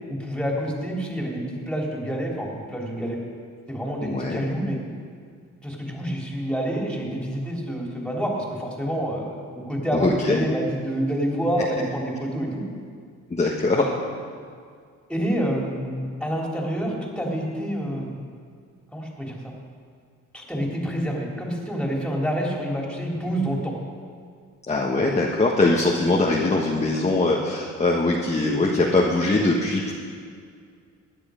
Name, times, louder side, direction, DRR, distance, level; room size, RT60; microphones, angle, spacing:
voice 1, 0.1-3.2 3.7-4.8 5.6-12.6 15.1-18.2 18.9-19.5 20.3-23.7, equal, 5° left, -2 dB, 3.3 m, -27 dB
voice 2, 4.0-4.4 9.9-10.4 13.3-13.9 24.7-29.9, left 2 dB, 20° left, -2 dB, 1.5 m, -22 dB
16.5 x 10.0 x 5.1 m, 2.1 s
cardioid pair, 90°, 30 cm